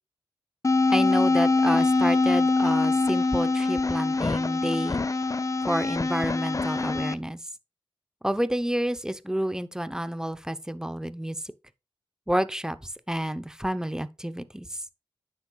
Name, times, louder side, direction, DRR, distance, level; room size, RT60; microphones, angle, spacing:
sound 1, 0.6-7.1, left 3 dB, 35° left, 0.5 m, -24 dB
voice 1, 0.9-5.1 5.7-7.4 8.2-11.4 12.3-14.8, right 1 dB, 5° right, 0.7 m, -29 dB
9.4 x 6.7 x 2.3 m
cardioid pair, 45°, 9 cm